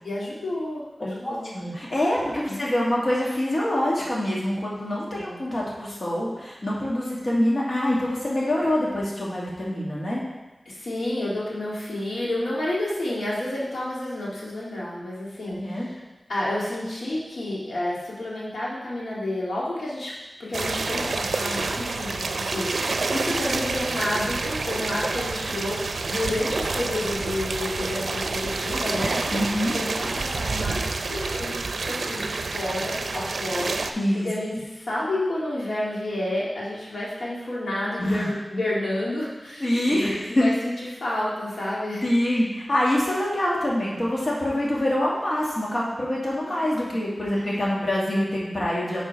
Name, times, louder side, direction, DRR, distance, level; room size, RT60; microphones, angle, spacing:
voice 1, 0.0-1.5 2.5-2.6 5.2-5.4 10.7-16.0 16.3-20.1 20.4-40.7 41.0-42.0 46.5-47.0 47.4-47.5, left 1 dB, 80° left, -6 dB, 1.9 m, -30 dB
voice 2, 1.2-10.2 15.6-15.9 29.3-29.8 33.9-34.3 38.0-38.3 39.6-40.5 42.0-49.1, left 1 dB, 45° left, -5 dB, 1.7 m, -25 dB
sound 1, 20.5-33.9, right 3 dB, 85° right, 0.5 m, -28 dB
10.0 x 3.8 x 4.5 m, 1.1 s
wide cardioid pair, 95°, 0 cm